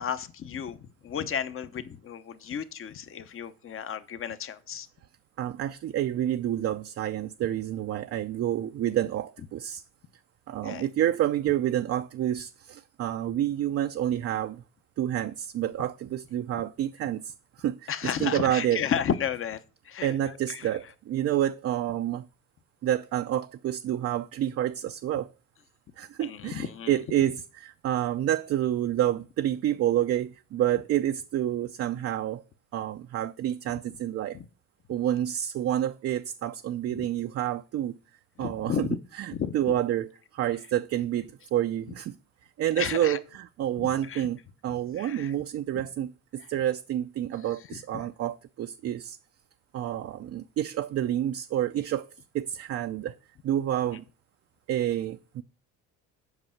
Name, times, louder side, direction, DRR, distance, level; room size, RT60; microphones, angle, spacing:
voice 1, 0.0-4.9 10.6-10.9 17.9-20.7 26.2-27.0 34.3-34.5 36.9-37.0 38.4-39.0 39.3-39.8 42.8-43.2 43.8-44.3 44.7-45.4 45.7-45.8, left 8 dB, 40° left, 0.9 m, -33 dB
voice 2, 5.4-9.8 10.5-14.6 15.0-17.9 18.2-18.8 20.0-22.3 22.8-25.3 26.0-32.4 32.7-34.4 34.9-38.0 38.4-38.9 39.2-42.2 42.6-49.2 49.7-52.1 52.3-53.1 53.4-54.0 54.7-55.4, right 11 dB, 50° right, 0.5 m, -29 dB
8.0 x 5.4 x 7.2 m
cardioid pair, 100°, 32 cm